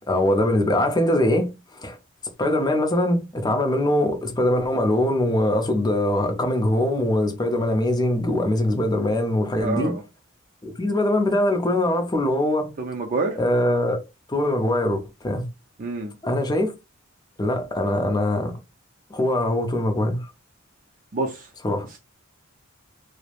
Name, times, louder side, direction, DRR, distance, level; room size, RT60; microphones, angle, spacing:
voice 1, 0.1-1.5 1.7-2.0 2.4-9.9 10.6-12.7 13.4-14.0 14.3-15.4 16.2-16.7 17.4-18.5 19.1-20.3 21.6-21.9, left 1 dB, 20° left, 0.5 m, -22 dB
voice 2, 9.6-10.0 12.8-13.4 15.8-16.1 21.1-21.5 21.9-22.0, right 3 dB, 40° right, 0.4 m, -27 dB
3.1 x 2.0 x 2.4 m
head